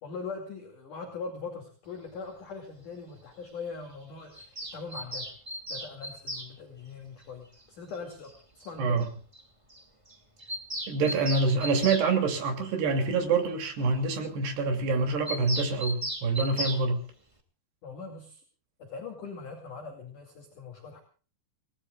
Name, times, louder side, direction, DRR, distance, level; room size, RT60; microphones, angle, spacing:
voice 1, 0.0-5.3 5.7-9.0 17.8-18.4 18.8-21.0, left 4 dB, 50° left, 2 dB, 3.6 m, -41 dB
Bird vocalization bird call bird song, 4.3-6.5 7.9-8.0 8.3-8.4 8.6-8.7 9.0-9.1 9.3-9.4 9.7-9.8 10.1-12.1 15.3-16.8, equal, 20° right, 0.8 m, -36 dB
voice 2, 10.9-17.0, right 4 dB, 60° right, 5 dB, 4.9 m, -26 dB
29.0 x 19.0 x 2.4 m, 0.39 s
omnidirectional pair, 5.4 m